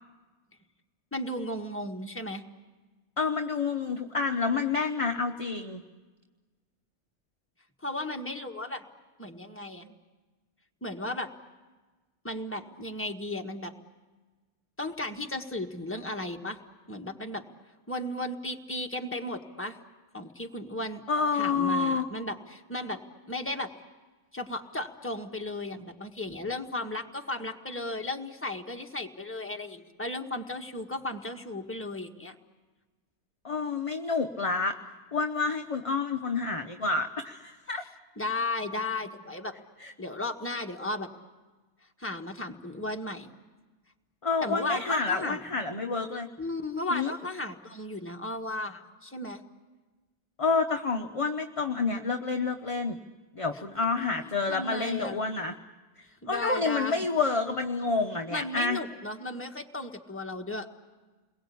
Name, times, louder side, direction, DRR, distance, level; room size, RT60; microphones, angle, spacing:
voice 1, 1.1-2.4 7.8-8.8 9.2-10.0 10.8-11.3 12.2-13.7 14.8-16.6 16.9-17.4 17.9-19.8 20.1-21.0 21.3-23.0 23.3-23.7 24.3-32.3 38.2-39.5 40.0-41.1 42.0-43.3 44.4-45.4 46.4-49.4 54.5-55.2 56.2-57.1 58.3-60.7, left 2 dB, 10° left, 2 dB, 1.4 m, -35 dB
voice 2, 3.2-5.8 21.1-22.0 33.4-34.8 35.1-37.8 39.8-39.9 44.2-46.3 46.9-47.1 50.4-53.0 53.4-55.5 56.0-58.8, left 4 dB, 30° left, 4 dB, 0.8 m, -29 dB
29.0 x 22.0 x 8.5 m, 1.3 s
omnidirectional pair, 1.4 m